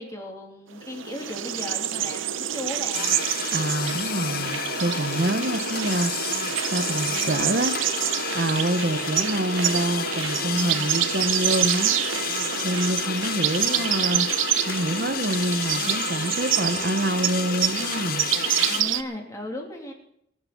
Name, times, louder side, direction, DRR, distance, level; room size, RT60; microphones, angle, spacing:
voice 1, 0.0-3.1 18.7-19.9, left 1 dB, 15° left, 1 dB, 2.9 m, -36 dB
sound 1, 0.8-19.0, right 10 dB, 85° right, 0.8 m, -27 dB
sound 2, 2.9-18.8, left 7 dB, 50° left, 0.7 m, -31 dB
voice 2, 3.5-7.8 8.3-12.0 12.6-18.3, right 1 dB, 50° right, 11 dB, 1.0 m, -27 dB
22.5 x 7.8 x 5.9 m, 0.73 s
head